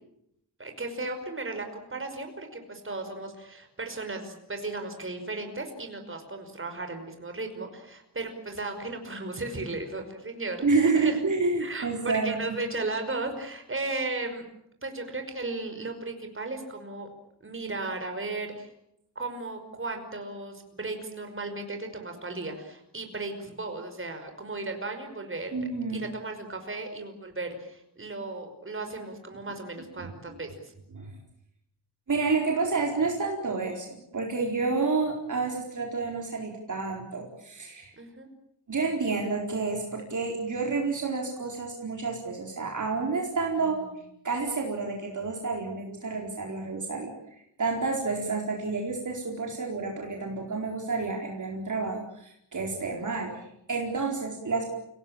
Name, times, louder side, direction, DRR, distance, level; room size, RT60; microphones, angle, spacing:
voice 1, 0.6-11.2 11.6-14.4 14.8-17.1 17.4-18.7 19.2-30.7 38.0-38.3 43.6-43.7, right 2 dB, 30° right, 5 dB, 5.5 m, -35 dB
voice 2, 10.6-12.3 25.5-26.1 30.9-31.2 32.1-37.9 38.7-43.8 44.2-47.1 47.6-54.7, right 4 dB, 45° right, 0 dB, 4.5 m, -29 dB
28.5 x 18.5 x 8.8 m, 0.77 s
wide cardioid pair, 105°, 41 cm